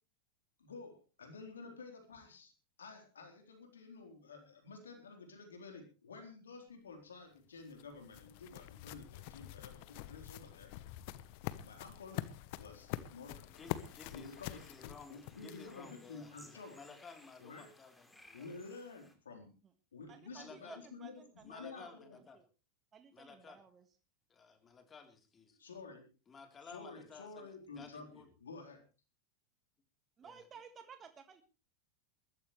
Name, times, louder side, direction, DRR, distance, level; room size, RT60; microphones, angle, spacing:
voice 1, 0.6-2.5 2.8-10.7 11.6-12.2 12.6-13.5 14.1-16.8 17.4-17.7 18.3-19.5 19.9-22.2 25.6-26.1 26.6-28.8, left 4 dB, 85° left, 5 dB, 4.1 m, -51 dB
sound 1, 7.3-15.9, left 15 dB, 60° left, 1.0 m, -46 dB
voice 2, 13.5-18.5 20.3-20.8 21.4-22.4 23.1-23.6 24.3-25.6 26.3-28.3 30.2-30.4, left 5 dB, 25° left, 5 dB, 3.8 m, -55 dB
sound 2, 13.5-19.2, left 1 dB, 5° left, 3.3 m, -62 dB
voice 3, 20.1-21.9 22.1-22.5 22.9-23.9 30.2-31.4, right 6 dB, 30° right, 8 dB, 1.6 m, -56 dB
21.5 x 13.5 x 3.3 m, 0.33 s
hypercardioid pair, 95°, 0 cm